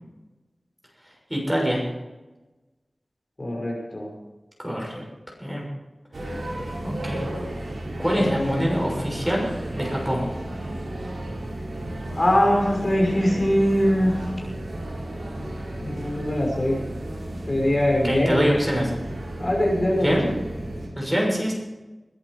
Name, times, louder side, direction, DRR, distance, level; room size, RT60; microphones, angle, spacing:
voice 1, 1.3-1.8 4.6-5.0 5.4-5.6 6.2-6.4 6.8-7.2 8.0-9.5 9.7-10.3 18.0-18.9 20.0-20.2 21.0-21.5, equal, 10° right, -1 dB, 6.5 m, -24 dB
voice 2, 3.4-4.1 8.2-8.7 12.1-14.2 15.3-15.5 15.8-16.8 17.5-18.5 19.4-20.1, left 1 dB, 45° left, -1 dB, 5.6 m, -22 dB
sound 1, 6.1-20.9, right 1 dB, 85° right, 4.4 m, -33 dB
21.5 x 11.0 x 5.0 m, 1.1 s
wide cardioid pair, 70°, 0 cm